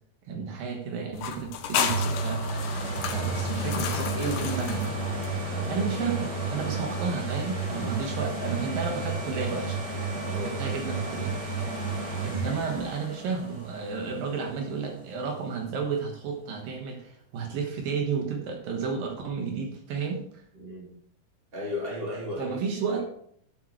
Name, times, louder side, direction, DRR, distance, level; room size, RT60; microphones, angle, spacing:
voice 1, 0.3-2.5 3.1-4.9 5.7-9.8 10.4-11.4 12.2-20.2 22.4-23.0, right 5 dB, 70° right, 2 dB, 2.9 m, -32 dB
sound 1, 1.1-5.7, left 8 dB, 70° left, 2.1 m, -33 dB
sound 2, 1.8-15.5 16.1-16.2, right 3 dB, 30° right, 2.6 m, -32 dB
voice 2, 10.2-10.8 20.5-20.9 21.5-22.6 22.9-23.0, left 1 dB, 15° right, -3 dB, 2.9 m, -35 dB
12.5 x 8.0 x 3.1 m, 0.64 s
omnidirectional pair, 4.3 m